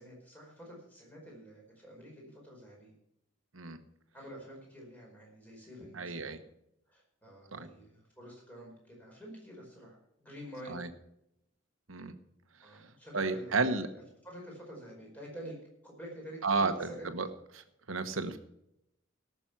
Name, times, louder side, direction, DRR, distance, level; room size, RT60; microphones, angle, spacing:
voice 1, 0.0-2.9 4.1-6.4 6.9-10.9 12.6-13.6 13.9-15.5 15.8-17.3, equal, 10° left, -2 dB, 4.9 m, -48 dB
voice 2, 6.0-6.4 7.5-7.7 10.7-10.9 11.9-12.1 13.1-13.9 16.4-17.3 17.9-18.4, right 3 dB, 90° right, 9 dB, 1.2 m, -31 dB
18.0 x 7.0 x 6.0 m, 0.81 s
head